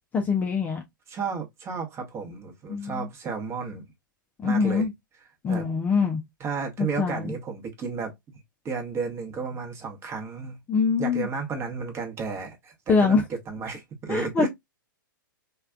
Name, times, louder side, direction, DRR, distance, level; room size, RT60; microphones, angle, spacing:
voice 1, 0.1-0.8 2.7-3.0 4.4-4.9 5.4-6.2 6.8-7.3 10.7-11.3 12.9-13.2 14.1-14.5, left 5 dB, 15° left, 0.4 m, -23 dB
voice 2, 1.1-3.9 4.4-4.9 5.5-5.7 6.4-8.1 8.6-10.6 11.0-14.5, right 5 dB, 25° right, 0.9 m, -32 dB
3.3 x 2.3 x 2.2 m
figure-of-eight pair, 110°, 11 cm